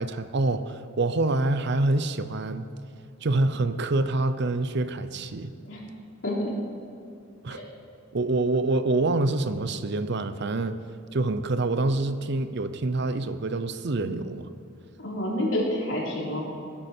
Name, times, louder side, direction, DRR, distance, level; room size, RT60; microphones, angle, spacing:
voice 1, 0.0-2.7 3.2-5.5 7.4-7.6 8.1-10.8 11.1-14.5, right 2 dB, 55° right, 11 dB, 0.6 m, -26 dB
voice 2, 15.0-16.4, left 1 dB, 65° left, -4 dB, 3.7 m, -28 dB
20.0 x 10.0 x 4.5 m, 2.6 s
head